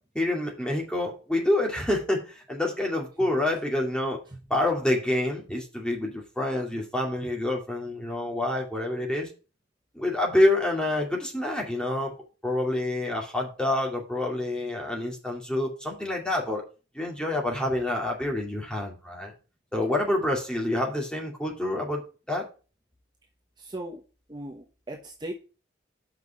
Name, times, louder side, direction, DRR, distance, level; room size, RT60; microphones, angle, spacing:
voice 1, 0.1-4.2 4.5-9.3 9.9-12.1 12.4-16.6 16.9-19.3 19.7-22.0 22.3-22.4, left 1 dB, 5° left, -1 dB, 2.3 m, -27 dB
voice 2, 23.6-24.0 24.3-25.3, right 1 dB, 25° right, 1 dB, 1.1 m, -38 dB
5.8 x 5.8 x 7.0 m, 0.34 s
head